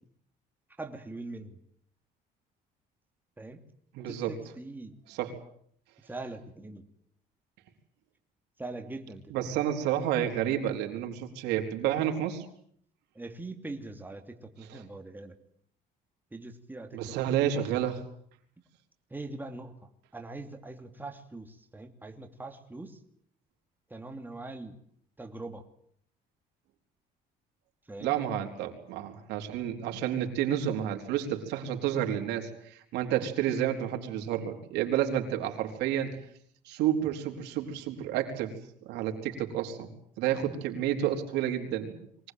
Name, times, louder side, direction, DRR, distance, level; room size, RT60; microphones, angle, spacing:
voice 1, 0.8-1.6 3.4-3.6 4.1-4.9 6.0-6.9 8.6-9.5 13.1-15.4 16.3-17.2 17.7-17.8 19.1-23.0 23.9-24.8 25.2-25.6 27.9-28.2, right 2 dB, 10° right, 5 dB, 2.9 m, -42 dB
voice 2, 3.9-4.4 5.1-5.4 9.3-12.5 14.7-14.8 16.9-18.0 28.0-36.1 36.7-38.6 38.8-39.9 40.2-41.9, right 10 dB, 90° right, 4 dB, 4.1 m, -30 dB
24.0 x 19.5 x 9.3 m, 0.65 s
cardioid pair, 110°, 17 cm